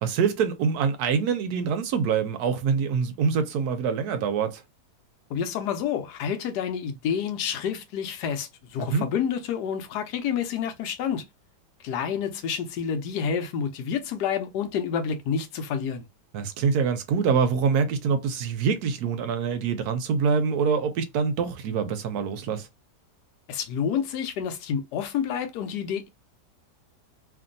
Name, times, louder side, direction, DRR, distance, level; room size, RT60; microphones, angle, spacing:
voice 1, 0.0-4.6 8.8-9.1 16.3-22.7, right 6 dB, 70° right, 1.0 m, -25 dB
voice 2, 5.3-11.2 11.8-16.1 23.5-26.1, left 7 dB, 75° left, 1.2 m, -29 dB
2.9 x 2.6 x 2.5 m
omnidirectional pair, 1.9 m